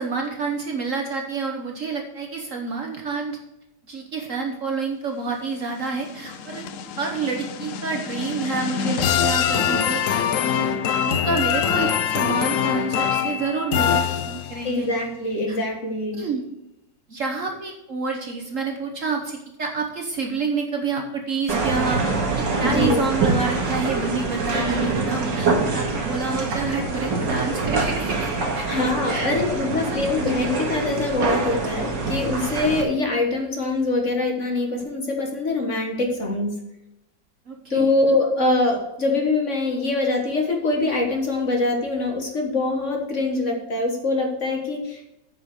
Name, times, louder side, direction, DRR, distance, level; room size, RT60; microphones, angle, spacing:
voice 1, 0.0-3.4 3.9-6.6 6.9-10.7 11.0-14.9 15.5-15.6 16.1-16.4 17.1-22.0 22.3-29.3 29.7-30.0 37.5-37.9, right 4 dB, 50° right, 2 dB, 1.2 m, -28 dB
sound 1, 5.8-14.7, left 8 dB, 70° left, 0.7 m, -24 dB
voice 2, 14.6-16.2 22.6-23.1 28.7-36.6 37.7-45.1, left 2 dB, 45° left, 2 dB, 1.6 m, -24 dB
sound 2, 21.5-32.8, right 3 dB, 75° right, 2.3 m, -25 dB
8.8 x 5.5 x 6.4 m, 0.90 s
omnidirectional pair, 2.0 m